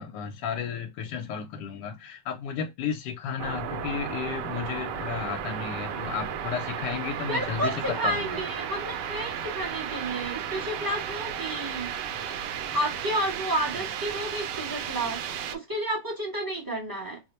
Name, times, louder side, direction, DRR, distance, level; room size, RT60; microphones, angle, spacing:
voice 1, 0.0-8.4, left 7 dB, 85° left, 1.2 m, -33 dB
sound 1, 3.4-15.6, right 8 dB, 85° right, 1.2 m, -34 dB
voice 2, 7.3-11.9 12.7-15.2 15.5-17.2, right 1 dB, 15° right, 0.7 m, -31 dB
3.0 x 2.0 x 4.1 m
omnidirectional pair, 1.8 m